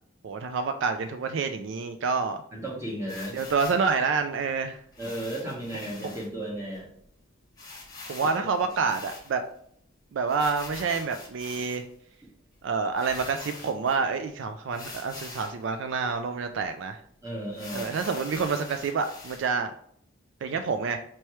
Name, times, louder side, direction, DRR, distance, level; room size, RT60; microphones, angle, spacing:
voice 1, 0.2-2.4 3.3-4.8 6.0-6.1 8.1-9.4 10.1-11.8 12.6-17.0 17.7-19.7 20.4-21.0, right 5 dB, 65° right, 7 dB, 0.3 m, -28 dB
voice 2, 2.5-3.4 5.0-6.9 17.2-17.9, right 1 dB, 15° right, -4 dB, 1.2 m, -34 dB
sound 1, 3.1-3.9 4.9-6.3 6.7-6.8 7.0-7.1 7.6-9.6 10.3-12.0 12.6-12.7 12.9-14.0 14.7-15.6 16.1-16.2 16.6-16.7 17.5-19.5, left 3 dB, 20° left, 1.0 m, -44 dB
4.5 x 3.0 x 3.1 m, 0.66 s
head